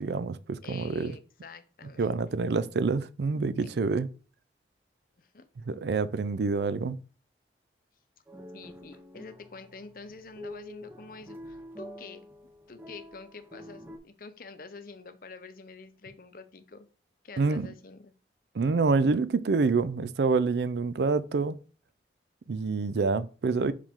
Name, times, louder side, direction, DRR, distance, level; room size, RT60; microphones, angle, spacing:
voice 1, 0.0-1.1 2.0-4.1 5.6-7.0 17.4-17.7 18.5-21.6 22.5-23.7, right 4 dB, 70° right, 0.4 m, -27 dB
voice 2, 0.6-2.2 3.6-3.7 5.2-5.5 8.5-12.2 12.7-16.9 17.2-18.1, left 4 dB, 50° left, 0.7 m, -47 dB
sound 1, 8.3-14.0, left 1 dB, 10° right, 0.7 m, -46 dB
5.6 x 5.0 x 3.6 m
head